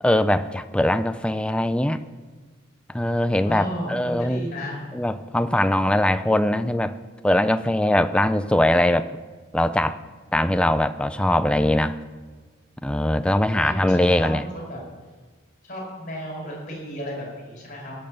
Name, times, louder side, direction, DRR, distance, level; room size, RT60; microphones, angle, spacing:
voice 1, 0.0-2.0 2.9-4.5 4.9-7.0 7.2-9.1 9.5-10.0 10.3-12.0 12.8-14.4, left 1 dB, 5° left, 11 dB, 0.3 m, -21 dB
voice 2, 3.4-4.8 13.5-14.8 15.6-17.9, equal, 40° left, -1 dB, 5.2 m, -33 dB
17.5 x 6.6 x 6.6 m, 1.4 s
head